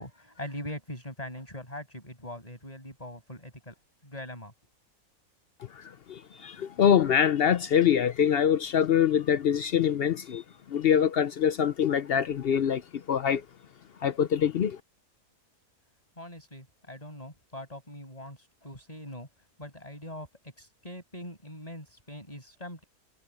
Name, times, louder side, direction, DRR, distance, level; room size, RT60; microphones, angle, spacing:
voice 1, 0.0-3.8 4.0-4.5 16.2-19.3 19.6-20.3 20.6-22.8, left 1 dB, 25° left, 7.1 m, -42 dB
voice 2, 6.1-10.4 10.7-12.8 13.1-13.4 14.0-14.8, left 8 dB, 65° left, 0.6 m, -24 dB
omnidirectional pair, 1.7 m